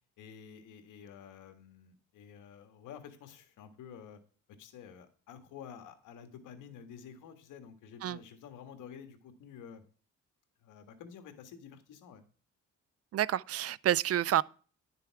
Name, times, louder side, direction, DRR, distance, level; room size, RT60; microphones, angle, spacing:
voice 1, 0.2-4.2 4.6-9.8 10.6-12.2, left 7 dB, 85° left, 1.8 m, -50 dB
voice 2, 13.1-14.4, right 12 dB, 55° right, 0.4 m, -29 dB
11.0 x 6.8 x 4.7 m
cardioid pair, 90°, 30 cm